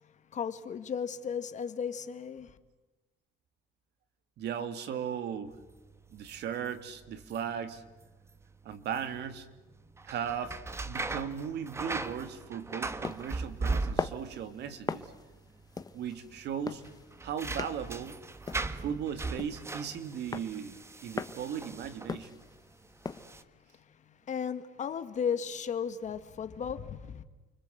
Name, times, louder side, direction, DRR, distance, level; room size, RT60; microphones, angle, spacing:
voice 1, 0.3-2.6 23.3-23.4 24.1-27.2, left 7 dB, 40° left, 1.8 m, -35 dB
voice 2, 4.4-5.6 6.1-7.8 8.6-9.5 10.1-10.6 10.8-15.1 15.9-16.8 17.2-18.2 18.8-22.4, right 8 dB, 65° right, 2.6 m, -37 dB
sound 1, 5.5-22.5 23.0-23.4, right 3 dB, 15° right, 1.4 m, -39 dB
sound 2, 13.0-23.3, left 4 dB, 20° left, 1.1 m, -41 dB
30.0 x 25.0 x 8.0 m
cardioid pair, 160°, 19 cm